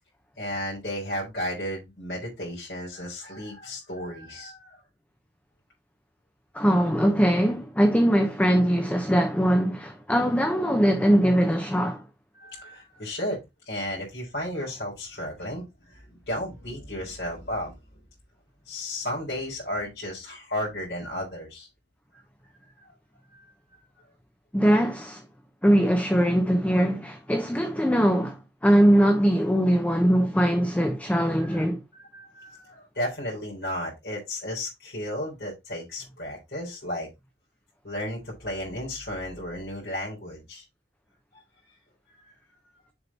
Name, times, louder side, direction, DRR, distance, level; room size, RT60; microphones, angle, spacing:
voice 1, 0.4-4.8 12.4-13.4 13.7-17.7 18.7-21.7 23.3-23.4 31.4-31.6 31.9-37.1 37.8-40.6, left 1 dB, 65° left, 4.0 m, -34 dB
voice 2, 6.5-12.0 24.5-25.2 25.6-31.8, equal, 10° left, 0.8 m, -21 dB
7.1 x 5.1 x 4.1 m
head